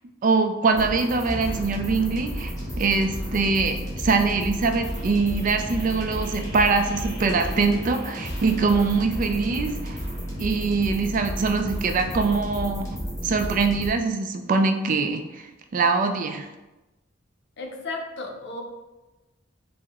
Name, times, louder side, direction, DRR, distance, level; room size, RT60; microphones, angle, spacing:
voice 1, 0.2-10.0 10.4-12.9 13.2-16.5, right 4 dB, 45° right, 6 dB, 0.3 m, -23 dB
sound 1, 0.7-13.9, equal, 15° left, 1.0 m, -32 dB
voice 2, 17.6-18.6, left 2 dB, 60° left, 2 dB, 0.6 m, -34 dB
4.6 x 2.0 x 3.5 m, 1.1 s
head